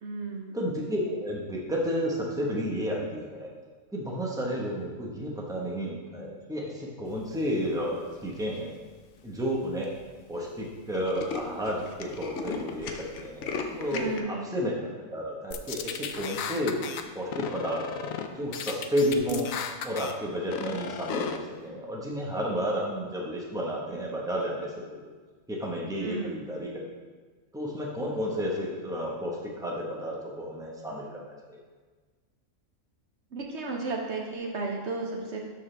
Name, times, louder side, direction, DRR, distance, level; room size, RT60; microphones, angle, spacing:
voice 1, 0.0-0.6 13.9-14.6 26.0-26.4 33.3-35.5, right 3 dB, 60° right, 0 dB, 1.0 m, -34 dB
voice 2, 0.5-3.5 3.9-8.7 9.2-9.9 10.3-14.7 15.1-16.8 17.1-19.5 19.8-25.1 25.5-26.8 27.5-31.6, equal, 5° right, -3 dB, 1.1 m, -31 dB
Tools, 8.1-8.6 9.2-9.3 9.5-9.6 9.8-10.0 10.3-10.4 10.7-14.2, left 5 dB, 65° left, 1.0 m, -37 dB
sound 1, 15.5-17.0 17.3-18.3 18.5-20.1 20.5-21.4, left 7 dB, 90° left, 1.0 m, -35 dB
12.5 x 4.7 x 3.4 m, 1.4 s
omnidirectional pair, 1.4 m